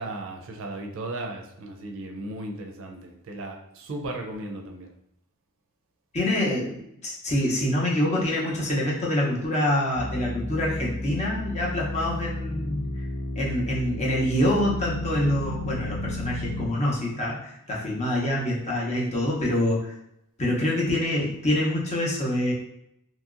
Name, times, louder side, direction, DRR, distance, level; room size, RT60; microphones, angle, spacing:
voice 1, 0.0-4.9, right 2 dB, 60° right, 2 dB, 0.4 m, -36 dB
voice 2, 6.1-12.9 13.4-19.9 20.4-22.5, left 1 dB, 30° left, -3 dB, 0.6 m, -26 dB
sound 1, 9.9-16.7, left 1 dB, 85° left, 0.4 m, -33 dB
2.8 x 2.7 x 2.4 m, 0.78 s
head